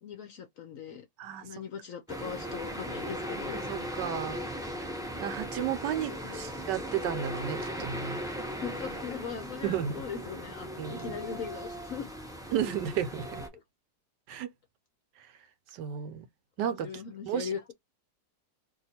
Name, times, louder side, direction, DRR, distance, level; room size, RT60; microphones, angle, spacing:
voice 1, 0.0-1.1 1.4-3.6 5.8-6.4 8.6-12.1 13.5-13.6 16.6-17.6, left 7 dB, 65° left, 0.8 m, -40 dB
sound 1, 2.1-13.5, equal, 5° right, 0.4 m, -38 dB
voice 2, 3.5-4.4 5.2-8.2 9.6-10.0 10.8-11.2 12.5-13.4 14.3-14.5 15.7-16.2 16.6-17.5, right 9 dB, 80° right, 1.3 m, -33 dB
2.9 x 2.6 x 4.2 m
omnidirectional pair, 1.9 m